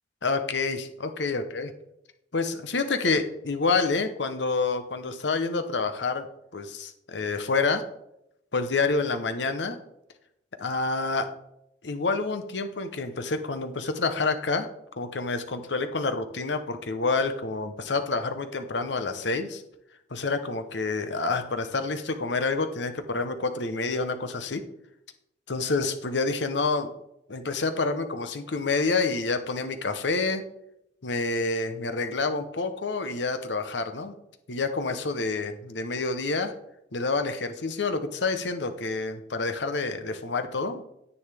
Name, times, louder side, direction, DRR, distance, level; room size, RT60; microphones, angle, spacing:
voice 1, 0.2-1.7 2.3-6.3 6.5-7.8 8.5-9.8 10.6-11.3 11.8-14.7 15.0-19.6 20.1-24.6 25.5-26.9 27.3-30.4 31.0-34.1 34.5-36.5 36.9-40.8, left 3 dB, 75° left, 8 dB, 0.9 m, -28 dB
9.8 x 9.5 x 3.5 m, 0.82 s
head